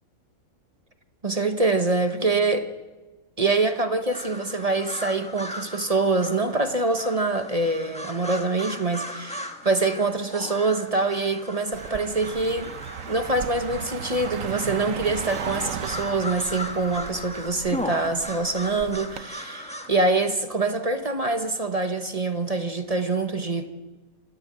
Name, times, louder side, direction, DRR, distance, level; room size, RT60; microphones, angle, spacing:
voice 1, 1.2-2.7 3.4-12.7 13.1-23.7, right 3 dB, 30° right, 7 dB, 1.1 m, -25 dB
sound 1, 4.1-19.9, left 1 dB, 5° left, 1.3 m, -38 dB
Car passing by, 11.7-19.2, right 8 dB, 65° right, 1.2 m, -36 dB
28.0 x 14.0 x 7.6 m, 1.3 s
omnidirectional pair, 1.5 m